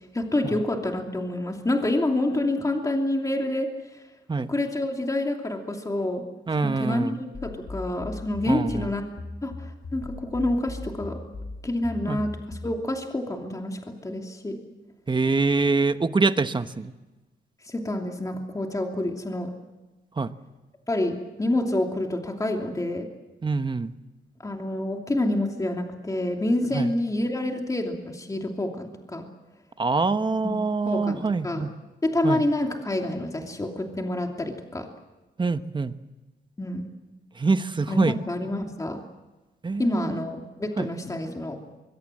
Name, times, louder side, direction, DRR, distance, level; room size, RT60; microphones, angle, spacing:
voice 1, 0.1-3.7 4.5-6.2 6.6-9.0 9.4-11.2 11.6-14.6 17.6-19.5 20.9-23.1 24.4-29.3 30.4-30.5 30.8-31.7 32.0-34.9 36.6-36.8 37.9-39.0 39.8-41.6, left 1 dB, 15° left, 2 dB, 2.8 m, -28 dB
voice 2, 6.5-7.2 8.5-8.9 12.1-12.2 15.1-16.9 20.2-20.3 23.4-23.9 26.7-26.9 29.8-31.7 32.2-32.4 35.4-35.9 37.4-38.2 39.6-40.2 40.8-40.9, right 4 dB, 25° right, 10 dB, 1.2 m, -25 dB
sound 1, 7.3-12.8, left 2 dB, 40° left, 3.7 m, -38 dB
24.0 x 22.5 x 7.7 m, 1.1 s
cardioid pair, 105°, 19 cm